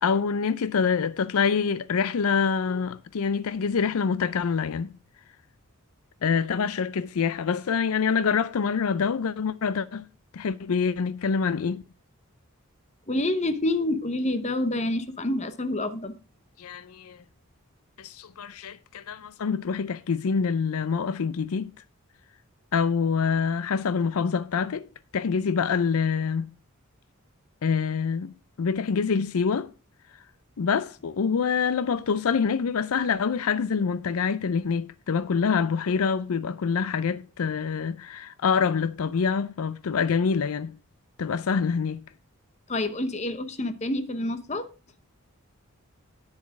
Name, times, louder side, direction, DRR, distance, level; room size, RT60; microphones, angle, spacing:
voice 1, 0.0-4.9 6.2-10.0 10.3-11.8 16.6-17.2 18.0-21.7 22.7-26.5 27.6-29.7 30.6-40.7 41.2-42.0, left 6 dB, 75° left, 0.5 m, -26 dB
voice 2, 13.1-16.1 42.7-44.7, left 1 dB, 30° left, 0.9 m, -28 dB
9.9 x 7.2 x 4.7 m
head